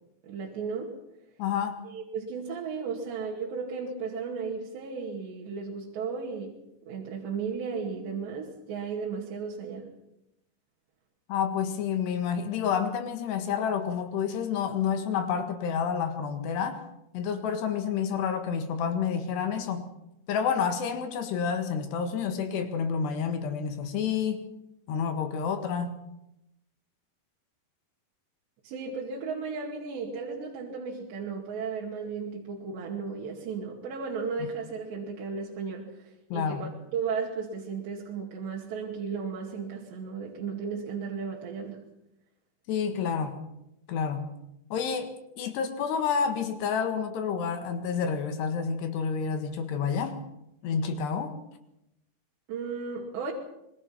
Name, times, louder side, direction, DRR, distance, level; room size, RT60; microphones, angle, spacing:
voice 1, 0.2-0.9 1.8-6.6 6.9-9.9 28.6-41.9 52.5-53.3, right 5 dB, 85° right, -2 dB, 4.6 m, -35 dB
voice 2, 1.4-1.8 11.3-16.9 17.1-19.9 20.3-24.4 24.9-26.0 36.3-36.7 42.7-43.4 43.9-44.3 44.7-50.2 50.6-51.4, left 6 dB, 80° left, 7 dB, 3.8 m, -29 dB
25.5 x 22.5 x 5.9 m, 0.86 s
omnidirectional pair, 4.8 m